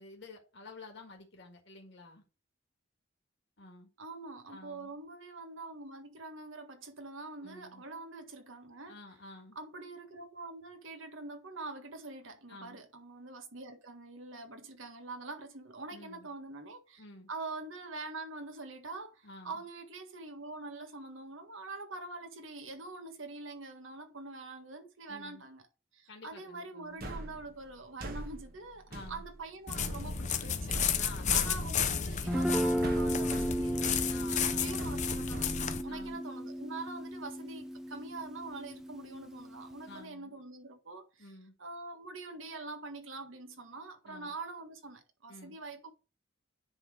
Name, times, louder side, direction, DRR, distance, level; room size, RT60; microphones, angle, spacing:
voice 1, 0.0-2.2 3.6-3.9 4.5-4.9 7.4-7.8 8.9-9.6 12.5-12.8 15.9-16.3 17.0-17.3 19.2-19.6 25.1-25.4 26.1-27.0 28.9-29.2 31.0-31.7 34.1-34.9 35.9-36.2 39.8-40.4 41.2-41.5 44.0-44.3 45.3-45.6, left 2 dB, 60° left, 1.8 m, -51 dB
voice 2, 4.0-9.0 9.5-25.6 25.9-31.0 31.3-34.0 34.4-41.3 41.6-45.9, right 3 dB, 75° right, 1.7 m, -45 dB
sound 1, 27.0-36.1, right 2 dB, 50° right, 1.3 m, -42 dB
sound 2, 29.7-35.8, left 8 dB, 35° left, 0.7 m, -33 dB
Guitar, 32.3-40.0, equal, 5° right, 0.5 m, -35 dB
9.9 x 3.8 x 4.9 m
head